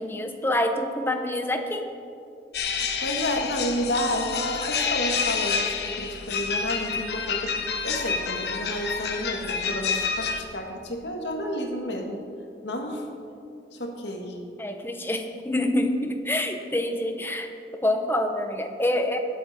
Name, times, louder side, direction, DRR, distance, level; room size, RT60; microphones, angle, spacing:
voice 1, 0.0-1.8 14.6-17.5 17.8-19.2, left 1 dB, 10° left, 5 dB, 0.9 m, -26 dB
sound 1, 2.5-10.4, left 5 dB, 70° left, 1.1 m, -28 dB
voice 2, 3.0-7.6 7.8-12.2 12.6-13.1 13.7-14.4, equal, 85° left, 2 dB, 1.7 m, -30 dB
20.0 x 8.4 x 4.2 m, 2.5 s
head